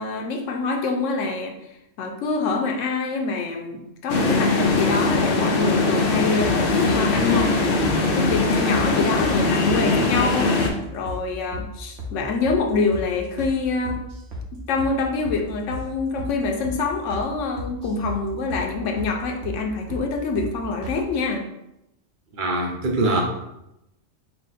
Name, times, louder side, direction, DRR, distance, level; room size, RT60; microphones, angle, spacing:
voice 1, 0.0-1.6 2.0-7.6 8.0-10.5 10.9-14.0 14.7-21.4, left 4 dB, 85° left, 3 dB, 1.0 m, -25 dB
sound 1, 4.1-10.7, left 3 dB, 60° left, 0.7 m, -21 dB
sound 2, 6.4-7.0 7.3-7.5 7.8-8.0 8.3-8.4 8.7-8.9 9.2-9.4 9.7-9.8 10.1-10.8 11.1-11.2 11.5-11.7 12.0-12.1 12.4-12.6 12.9-13.1 13.4-13.5 13.8-14.5 14.8-14.9 15.2-15.4 15.7-15.9 16.2-16.3 16.6-16.8 17.1-17.3 17.6-18.2 18.5-18.7 19.0-19.1 19.4-19.6 19.9-20.1 20.4-20.5 20.8-21.0, left 1 dB, 80° right, 1.2 m, -33 dB
voice 2, 22.4-23.2, right 2 dB, 50° right, 1 dB, 0.8 m, -22 dB
4.6 x 2.1 x 4.0 m, 0.86 s
omnidirectional pair, 1.2 m